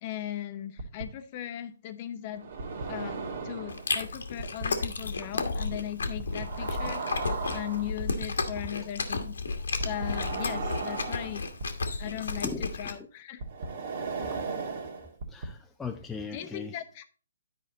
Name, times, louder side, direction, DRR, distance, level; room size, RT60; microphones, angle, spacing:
voice 1, 0.0-2.5 2.9-9.4 9.8-11.4 12.0-13.4 16.3-17.0, left 12 dB, 35° left, 0.9 m, -38 dB
sound 1, 0.8-1.0 2.3-3.9 4.4-4.6 6.2-8.2 9.8-11.9 13.4-15.5, right 4 dB, 50° right, 1.5 m, -36 dB
Chewing mastication, 3.7-12.9, left 3 dB, 75° left, 1.3 m, -33 dB
voice 2, 12.4-13.1 14.2-14.5 15.3-16.8, left 4 dB, 10° left, 0.5 m, -40 dB
10.0 x 4.9 x 3.9 m
hypercardioid pair, 140°, 0 cm